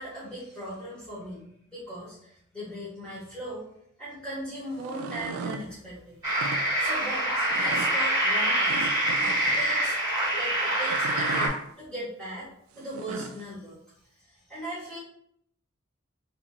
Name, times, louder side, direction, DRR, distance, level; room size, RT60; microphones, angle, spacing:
voice 1, 0.0-3.7 4.0-6.2 6.8-8.9 9.2-9.9 10.3-12.5 12.7-13.8 14.1-15.0, right 1 dB, 5° left, -11 dB, 1.5 m, -39 dB
sound 1, 4.7-5.6 6.3-6.6 7.5-7.9 8.7-9.6 10.8-11.6 12.8-13.4, right 4 dB, 75° right, 0.3 m, -36 dB
sound 2, 6.2-11.5, right 1 dB, 20° right, 1.5 m, -25 dB
3.8 x 3.1 x 2.3 m, 0.70 s
head